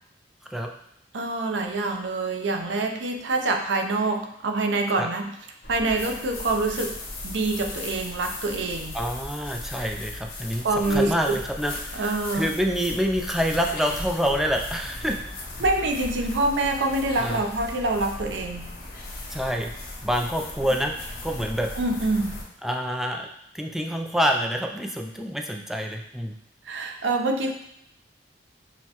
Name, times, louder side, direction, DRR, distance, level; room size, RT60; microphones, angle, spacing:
voice 1, 1.1-5.3 5.7-7.0 7.2-9.0 10.6-11.4 11.9-12.5 15.6-18.7 21.8-22.4 26.7-27.5, right 2 dB, 90° right, 4 dB, 0.5 m, -26 dB
sound 1, 5.6-22.4, left 2 dB, 60° left, 0.9 m, -37 dB
voice 2, 8.9-10.6 10.9-15.2 17.2-17.4 19.3-19.7 20.0-21.0 21.2-21.7 22.6-23.3 23.5-26.3, equal, ahead, 2 dB, 0.3 m, -27 dB
6.2 x 2.2 x 2.8 m, 0.77 s
head